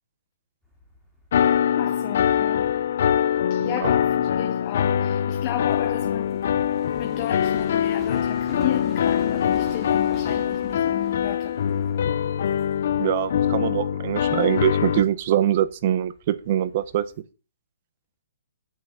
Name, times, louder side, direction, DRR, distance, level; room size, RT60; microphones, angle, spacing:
sound 1, 0.6-17.2, equal, 5° right, 2.3 m, -45 dB
sound 2, 1.3-15.0, left 9 dB, 55° left, 0.6 m, -23 dB
voice 1, 1.8-2.7 3.5-6.4 7.0-11.8, left 14 dB, 30° left, 0.9 m, -33 dB
voice 2, 3.6-3.9 13.0-17.1, right 11 dB, 40° right, 0.8 m, -23 dB
8.4 x 8.1 x 5.7 m
hypercardioid pair, 165°, 0 cm